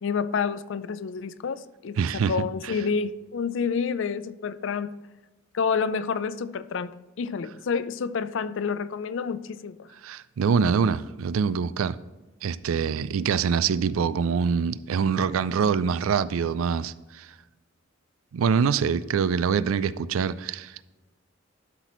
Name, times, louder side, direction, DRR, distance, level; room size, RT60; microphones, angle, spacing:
voice 1, 0.0-5.0 5.5-9.8, left 5 dB, 65° left, 0.4 m, -29 dB
voice 2, 2.0-2.7 10.0-12.0 12.4-17.3 18.3-20.8, right 6 dB, 85° right, 0.4 m, -25 dB
12.0 x 5.9 x 3.1 m
head